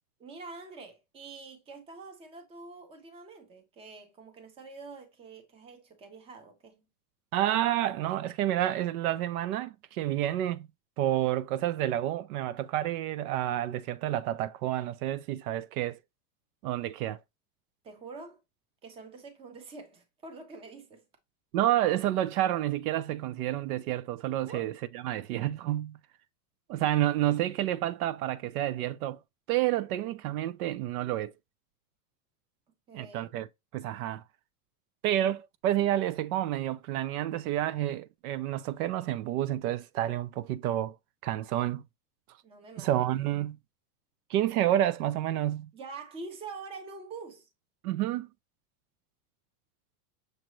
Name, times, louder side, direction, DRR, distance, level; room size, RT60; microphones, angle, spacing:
voice 1, 0.2-6.9 17.8-18.4 18.8-21.0 24.5-24.7 32.9-33.3 42.4-43.3 45.7-47.5, right 4 dB, 15° right, 0.5 m, -46 dB
voice 2, 7.3-10.7 11.0-16.0 16.6-17.2 21.5-26.0 26.7-29.2 29.5-31.3 32.9-33.5 33.7-34.2 35.0-41.0 41.2-41.8 42.8-43.6 44.3-45.7 47.8-48.3, right 13 dB, 70° right, 0.6 m, -29 dB
6.4 x 2.7 x 3.0 m
supercardioid pair, 165°, 46 cm